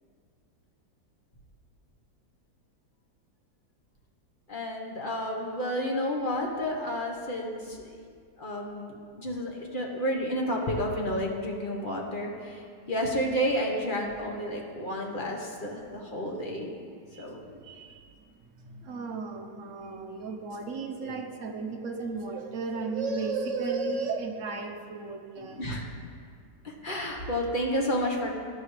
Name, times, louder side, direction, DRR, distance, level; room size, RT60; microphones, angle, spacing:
voice 1, 4.5-7.9 8.4-16.7 17.2-17.6 21.0-21.1 25.4-25.9 26.6-28.3, equal, 30° left, 0 dB, 1.2 m, -31 dB
voice 2, 17.6-25.7, right 4 dB, 50° right, 3 dB, 1.1 m, -34 dB
15.0 x 11.0 x 3.3 m, 2.1 s
omnidirectional pair, 2.0 m